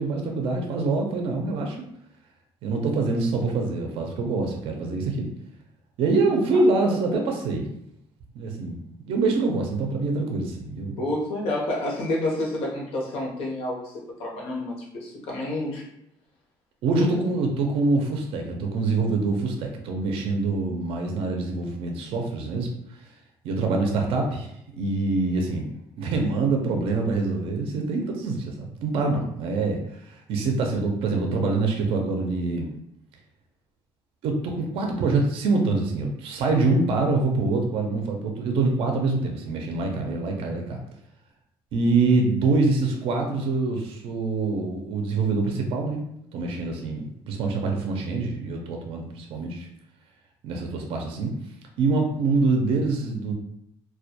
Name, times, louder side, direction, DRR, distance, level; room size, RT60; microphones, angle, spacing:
voice 1, 0.0-1.8 2.6-5.3 6.0-7.7 8.3-8.8 9.1-11.0 16.8-22.7 23.0-23.1 23.4-32.7 34.2-40.8 41.7-46.0 46.3-49.7 50.4-51.3 51.8-53.3, right 3 dB, 65° right, 2 dB, 0.4 m, -25 dB
voice 2, 11.0-15.8 17.0-17.2, left 1 dB, 75° left, -1 dB, 0.7 m, -29 dB
2.2 x 2.1 x 2.7 m, 0.76 s
cardioid pair, 130°, 10 cm